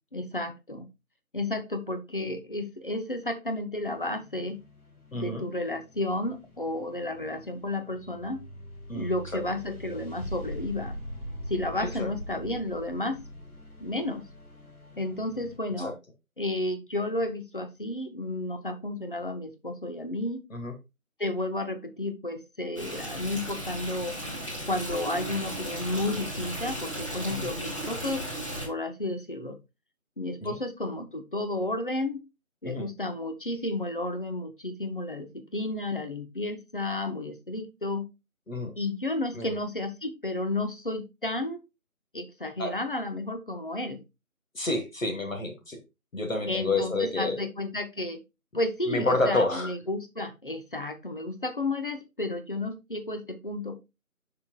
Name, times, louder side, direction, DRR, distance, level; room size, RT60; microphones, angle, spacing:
voice 1, 0.1-0.9 1.3-4.6 5.1-8.4 8.9-11.0 11.5-13.2 13.8-14.3 15.0-15.9 16.4-20.4 21.2-24.2 24.7-28.2 28.6-29.6 30.2-32.2 32.6-38.1 38.8-41.6 42.1-44.0 46.5-48.2 48.5-53.8, left 2 dB, 35° left, 8 dB, 0.7 m, -32 dB
sound 1, 3.8-15.6, equal, 85° left, 3.0 m, -43 dB
voice 2, 5.1-5.4 8.9-9.1 12.0-12.1 15.8-15.9 20.5-20.7 27.3-27.5 30.4-30.6 32.6-32.9 38.5-38.7 39.3-39.5 42.6-42.7 44.6-45.8 46.1-47.4 48.9-49.7, left 2 dB, 65° left, 5 dB, 1.6 m, -29 dB
Stream, 22.8-28.7, equal, 20° left, 1.6 m, -35 dB
8.5 x 5.7 x 2.3 m, 0.24 s
figure-of-eight pair, 165°, 43 cm